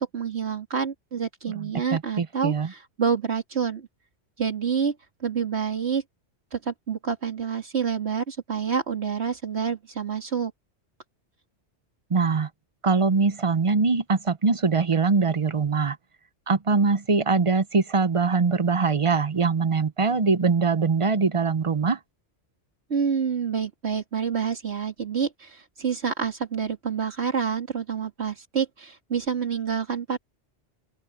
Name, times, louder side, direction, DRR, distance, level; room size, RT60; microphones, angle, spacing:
voice 1, 0.0-3.9 4.4-6.0 6.5-10.5 22.9-30.2, right 6 dB, 60° right, 2.6 m, -28 dB
voice 2, 1.5-2.7 12.1-12.5 12.8-16.0 16.5-22.0, right 4 dB, 35° right, 0.5 m, -22 dB
open air
omnidirectional pair, 1.2 m